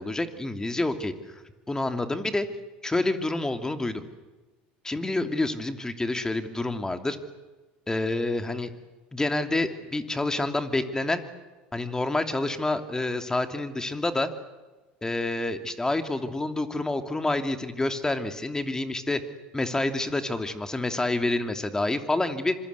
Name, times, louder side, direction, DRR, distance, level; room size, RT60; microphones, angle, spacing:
voice 1, 0.0-1.4 1.7-2.5 2.8-4.1 4.8-7.2 7.9-8.7 9.1-11.2 11.7-14.3 15.0-19.2 19.5-22.6, left 2 dB, 10° left, 7 dB, 2.7 m, -28 dB
26.0 x 24.5 x 8.3 m, 1.2 s
hypercardioid pair, 85°, 5 cm